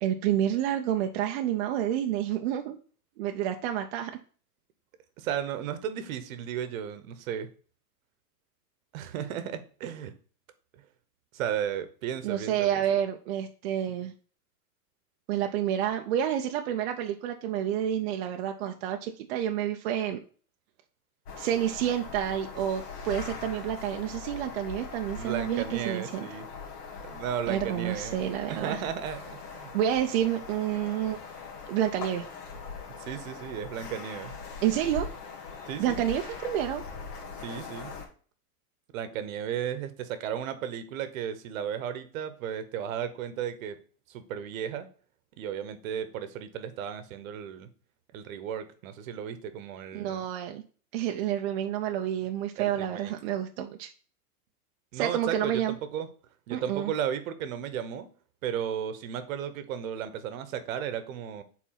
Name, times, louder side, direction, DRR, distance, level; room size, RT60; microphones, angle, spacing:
voice 1, 0.0-2.8 3.2-4.1 12.2-14.1 15.3-20.2 21.4-26.3 27.5-28.8 29.7-31.2 31.7-32.3 34.6-35.1 35.8-36.8 49.9-50.6 50.9-53.9 54.9-55.7 56.5-56.9, right 10 dB, 45° right, 4 dB, 0.5 m, -29 dB
voice 2, 5.2-7.5 8.9-10.1 11.3-12.8 25.1-26.5 27.0-28.2 28.5-29.7 33.0-34.4 35.7-36.0 37.4-37.9 38.9-43.8 44.1-44.9 45.4-47.7 48.1-50.2 52.6-53.1 54.9-56.1 56.5-58.1 58.4-61.4, right 9 dB, 60° right, 11 dB, 1.0 m, -34 dB
sound 1, 21.3-38.1, left 5 dB, 75° left, 1.9 m, -41 dB
4.7 x 4.0 x 5.6 m, 0.41 s
supercardioid pair, 155°, 46 cm